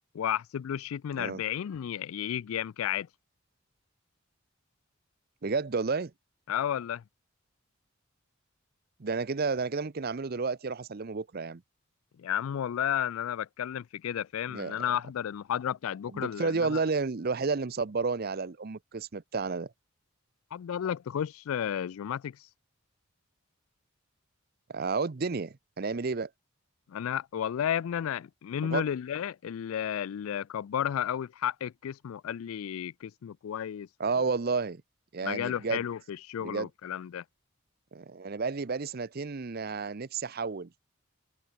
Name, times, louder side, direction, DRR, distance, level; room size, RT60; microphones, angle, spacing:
voice 1, 0.1-3.1 6.5-7.0 12.2-16.8 20.5-22.4 26.9-33.9 35.2-37.2, left 9 dB, 80° left, 0.3 m, -32 dB
voice 2, 5.4-6.1 9.0-11.6 14.5-14.8 16.1-19.7 24.7-26.3 28.6-28.8 34.0-34.8 35.1-35.8 36.4-36.7 37.9-40.7, right 4 dB, 45° right, 0.6 m, -31 dB
head